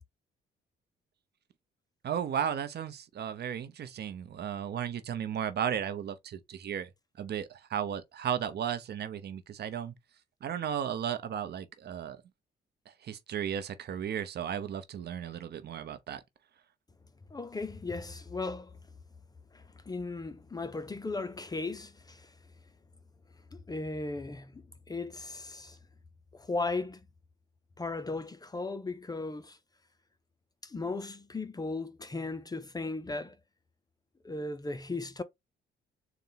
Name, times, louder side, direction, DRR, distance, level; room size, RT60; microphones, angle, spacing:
voice 1, 2.0-6.9 7.2-9.9 10.4-12.2 12.9-16.2, right 9 dB, 55° right, 0.7 m, -35 dB
voice 2, 17.3-18.8 19.5-22.3 23.5-25.8 26.3-27.0 27.8-29.6 30.6-33.3 34.2-35.2, left 3 dB, 20° left, 0.5 m, -37 dB
4.1 x 2.2 x 3.9 m
cardioid pair, 90°, 20 cm